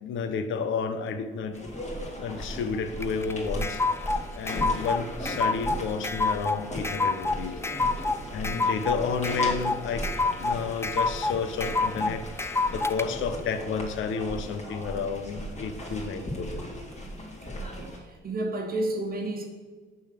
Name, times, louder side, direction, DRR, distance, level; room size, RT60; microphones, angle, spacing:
voice 1, 0.0-1.6 2.2-3.8 4.3-7.6 8.3-10.1 10.4-12.3 12.7-16.7, left 5 dB, 75° left, 9 dB, 0.9 m, -31 dB
sound 1, 1.5-18.0, equal, 35° left, 2.7 m, -37 dB
sound 2, 3.0-13.0, left 3 dB, 15° left, 0.5 m, -28 dB
voice 2, 8.4-8.8 17.6-19.4, right 1 dB, 45° right, 1 dB, 1.2 m, -32 dB
7.0 x 6.3 x 6.7 m, 1.4 s
cardioid pair, 90°, 20 cm